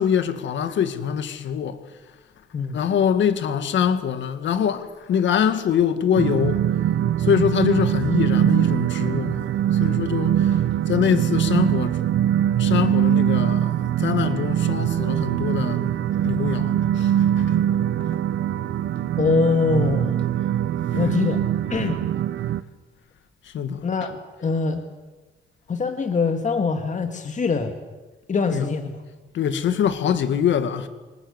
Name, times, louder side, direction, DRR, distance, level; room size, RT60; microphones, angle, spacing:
voice 1, 0.0-1.8 2.7-6.6 7.2-12.1 12.6-15.9 16.2-17.6 20.9-21.2 23.4-23.9 28.5-28.7 29.3-30.9, left 8 dB, 70° left, 1.9 m, -24 dB
sound 1, 6.1-22.6, right 10 dB, 70° right, 0.8 m, -22 dB
voice 2, 19.2-20.3 21.0-21.4 21.7-22.0 23.8-24.8 25.7-27.8 28.3-29.0, left 5 dB, 40° left, 1.9 m, -23 dB
24.0 x 19.5 x 8.1 m
cardioid pair, 90°, 20 cm